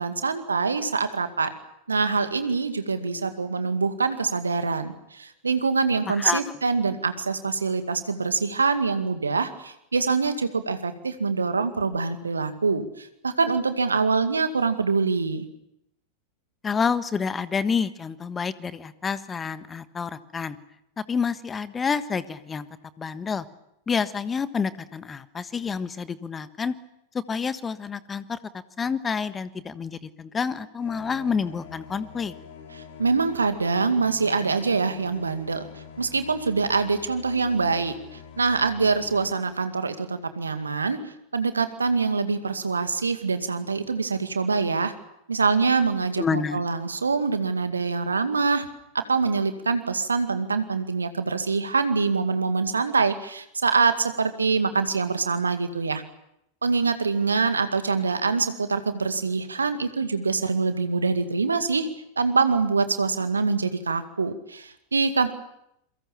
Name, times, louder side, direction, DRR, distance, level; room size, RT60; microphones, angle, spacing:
voice 1, 0.0-1.5 1.9-15.5 32.7-44.9 45.3-48.7 48.9-56.0 56.6-61.9 62.2-65.3, right 4 dB, 75° right, 9 dB, 2.1 m, -25 dB
voice 2, 6.1-6.6 16.6-20.6 21.0-22.7 23.0-23.4 23.9-26.7 27.1-28.4 28.8-32.3 46.2-46.6, left 5 dB, 20° left, 14 dB, 1.4 m, -28 dB
sound 1, 30.8-39.3, left 8 dB, 55° left, 3.8 m, -44 dB
27.5 x 23.0 x 7.2 m, 0.79 s
figure-of-eight pair, 90°, 0 cm